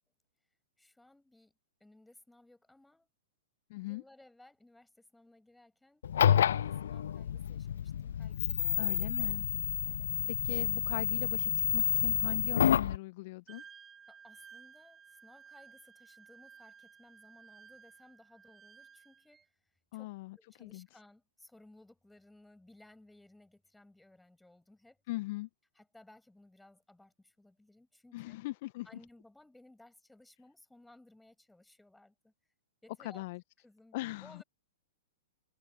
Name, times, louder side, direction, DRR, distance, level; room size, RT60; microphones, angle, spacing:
voice 1, 0.8-1.5 1.8-3.1 3.8-6.0 6.3-9.0 9.9-10.1 14.1-19.6 19.9-25.0 25.7-28.4 28.8-32.3 32.8-33.2 33.6-34.4, left 2 dB, 5° left, 7.5 m, -60 dB
voice 2, 3.7-4.0 8.8-9.4 10.4-13.6 19.9-20.9 25.1-25.5 28.1-28.9 33.0-33.4 33.9-34.4, left 20 dB, 50° left, 1.1 m, -40 dB
sound 1, 6.0-13.0, left 9 dB, 65° left, 0.6 m, -29 dB
Wind instrument woodwind instrument, 13.5-19.5, right 7 dB, 20° right, 3.0 m, -56 dB
figure-of-eight pair, 110°, 0 cm